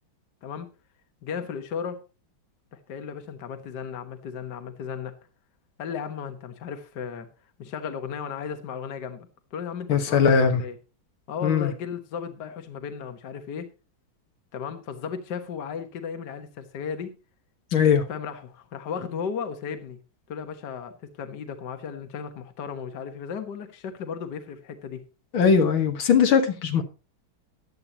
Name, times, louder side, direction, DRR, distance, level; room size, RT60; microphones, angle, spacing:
voice 1, 1.2-2.0 2.7-5.1 5.8-7.3 7.6-10.8 11.3-13.7 14.5-17.1 18.1-20.0 20.3-25.0, left 6 dB, 60° left, 7 dB, 1.8 m, -35 dB
voice 2, 9.9-10.6 11.4-11.7 17.7-18.0 25.3-26.8, left 6 dB, 75° left, 5 dB, 2.2 m, -20 dB
15.0 x 11.0 x 2.9 m, 0.31 s
omnidirectional pair, 2.2 m